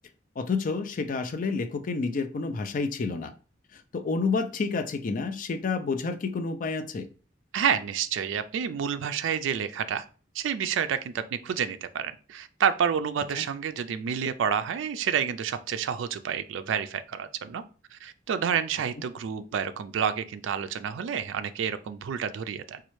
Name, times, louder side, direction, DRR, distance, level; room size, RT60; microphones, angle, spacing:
voice 1, 0.4-3.3 3.7-7.1, left 4 dB, 45° left, 6 dB, 0.4 m, -29 dB
voice 2, 7.5-10.0 10.3-17.6 17.9-22.8, right 7 dB, 70° right, 11 dB, 0.3 m, -29 dB
4.2 x 2.3 x 3.1 m, 0.38 s
head